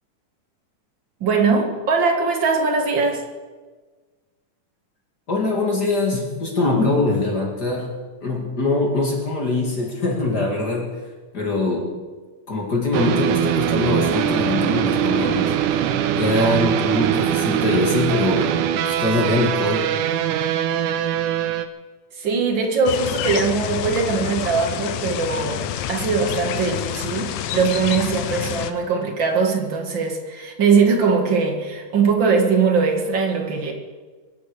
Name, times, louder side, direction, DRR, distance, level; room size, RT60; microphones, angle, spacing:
voice 1, 1.2-3.2 22.2-25.6 25.9-33.7, right 5 dB, 40° right, 3 dB, 2.3 m, -21 dB
voice 2, 5.3-7.9 8.2-10.9 11.3-12.0 12.5-15.5 16.1-18.6 18.9-19.9, left 2 dB, 35° left, 0 dB, 2.4 m, -22 dB
sound 1, 12.9-21.7, right 10 dB, 85° right, 2.3 m, -22 dB
sound 2, 22.9-28.7, left 11 dB, 90° left, 2.3 m, -28 dB
23.0 x 8.3 x 6.8 m, 1.4 s
omnidirectional pair, 3.6 m